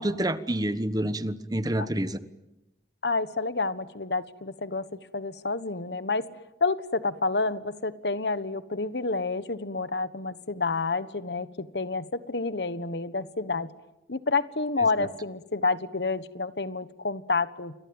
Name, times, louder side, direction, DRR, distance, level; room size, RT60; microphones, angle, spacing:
voice 1, 0.0-2.2 15.0-15.1, right 1 dB, 20° right, 12 dB, 1.2 m, -28 dB
voice 2, 3.0-4.9 5.1-6.2 6.6-13.7 14.1-17.7, left 3 dB, 65° left, 14 dB, 1.3 m, -29 dB
29.0 x 23.0 x 8.9 m, 0.94 s
head